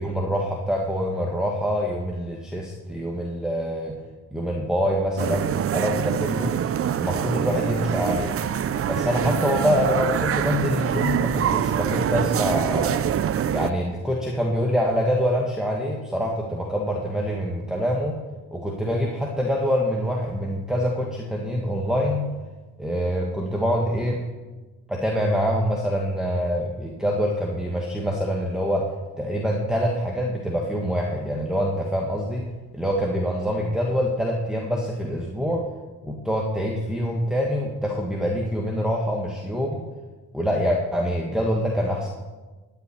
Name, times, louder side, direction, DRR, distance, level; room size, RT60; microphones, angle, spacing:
voice 1, 0.0-4.0 4.3-6.5 7.0-8.4 8.9-13.0 13.5-18.2 18.5-22.3 22.8-24.2 24.9-28.9 29.2-32.4 32.7-35.7 36.0-39.9 40.3-42.1, equal, ahead, -1 dB, 1.8 m, -25 dB
sound 1, 5.2-13.7, right 9 dB, 50° right, 0.7 m, -25 dB
15.5 x 5.9 x 9.5 m, 1.3 s
cardioid pair, 90°, 30 cm